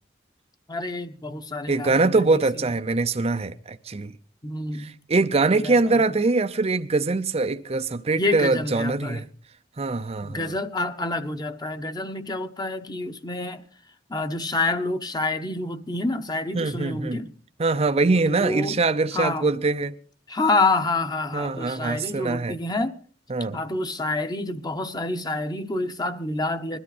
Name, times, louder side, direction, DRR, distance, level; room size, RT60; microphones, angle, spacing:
voice 1, 0.7-2.3 4.4-4.9 5.5-6.0 8.2-9.3 10.3-13.6 14.1-17.3 18.3-18.8 19.1-19.5 20.3-23.0 23.5-26.8, left 2 dB, 20° left, 1.1 m, -28 dB
voice 2, 1.7-4.1 4.8-9.2 9.8-10.5 16.5-17.2 17.6-20.0 21.3-22.6 23.3-23.6, right 3 dB, 35° right, 0.6 m, -23 dB
21.0 x 13.0 x 4.2 m
head